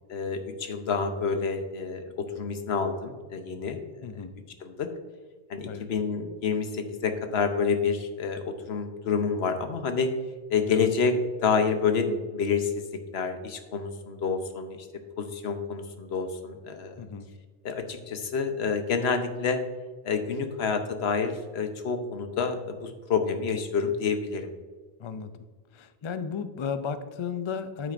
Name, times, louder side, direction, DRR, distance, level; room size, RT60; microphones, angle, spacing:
voice 1, 0.1-4.1 4.6-4.9 5.5-10.1 10.5-11.1 11.4-12.9 13.1-14.9 15.2-17.0 17.6-19.6 20.0-24.5, left 5 dB, 85° left, 7 dB, 1.1 m, -28 dB
voice 2, 4.0-4.3 5.7-6.0 10.7-10.9 17.0-17.3 25.0-25.3 25.7-27.9, left 6 dB, 50° left, 11 dB, 0.3 m, -34 dB
9.3 x 8.4 x 2.5 m, 1.4 s
omnidirectional pair, 1.0 m